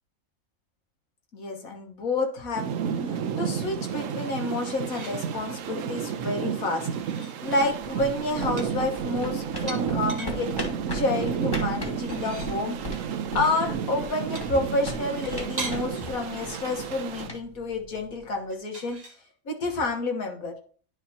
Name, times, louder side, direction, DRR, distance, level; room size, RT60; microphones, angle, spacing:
voice 1, 1.3-2.7 3.1-6.9 7.4-10.5 10.9-12.8 13.0-19.0 19.5-20.6, left 2 dB, 75° left, 3 dB, 1.7 m, -29 dB
sound 1, 2.6-17.3, right 7 dB, 70° right, 1.0 m, -31 dB
sound 2, 4.7-5.3 6.7-7.4 8.6-10.4 11.9-12.6 14.4-15.8 18.5-19.2, right 3 dB, 30° right, 1.0 m, -40 dB
sound 3, 7.7-18.3, equal, 15° left, 1.6 m, -38 dB
10.5 x 4.9 x 2.8 m, 0.44 s
omnidirectional pair, 1.5 m